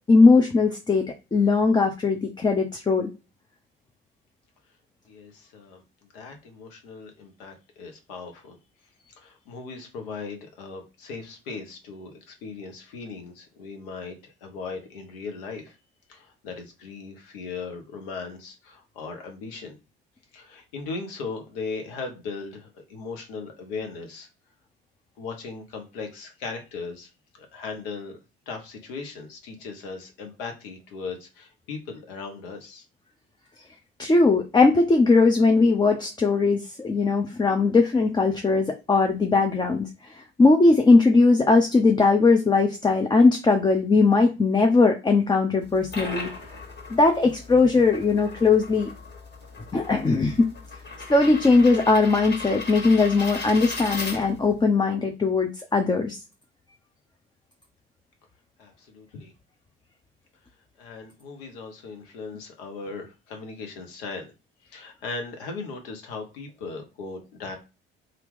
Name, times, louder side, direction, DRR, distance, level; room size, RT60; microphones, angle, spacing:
voice 1, 0.1-1.1 1.3-3.1 34.0-39.9 40.4-46.3 46.9-48.9 49.7-50.5 51.1-56.2, left 3 dB, 15° left, 4 dB, 0.5 m, -19 dB
voice 2, 5.1-5.8 6.1-8.6 9.1-15.7 16.1-19.8 20.3-24.3 25.2-27.1 27.4-28.2 28.5-32.8 58.6-59.3 60.8-64.3 64.7-67.6, left 4 dB, 70° left, 4 dB, 0.9 m, -38 dB
sound 1, 45.6-54.6, left 3 dB, 40° left, 1.6 m, -37 dB
2.8 x 2.5 x 3.6 m, 0.29 s
figure-of-eight pair, 50°, 29 cm